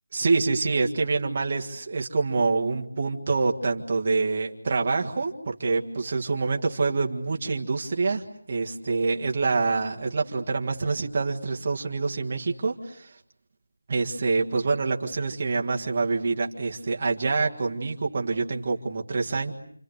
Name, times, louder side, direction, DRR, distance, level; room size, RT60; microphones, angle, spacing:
voice 1, 0.1-13.1 13.9-19.5, right 3 dB, 20° right, 1 dB, 1.8 m, -26 dB
29.5 x 25.0 x 8.1 m, 0.64 s
figure-of-eight pair, 180°, 0 cm